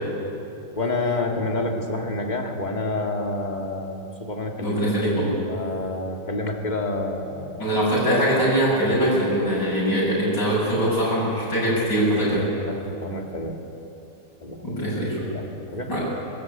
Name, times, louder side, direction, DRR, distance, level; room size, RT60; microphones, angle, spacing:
voice 1, 0.8-7.7 8.8-9.1 12.7-13.6 14.4-14.6 15.3-15.9, left 2 dB, 25° left, 2 dB, 2.3 m, -29 dB
voice 2, 4.6-5.4 7.6-12.7 14.6-15.1 15.9-16.0, right 1 dB, 80° left, -8 dB, 8.4 m, -22 dB
23.5 x 20.5 x 8.6 m, 2.9 s
omnidirectional pair, 1.9 m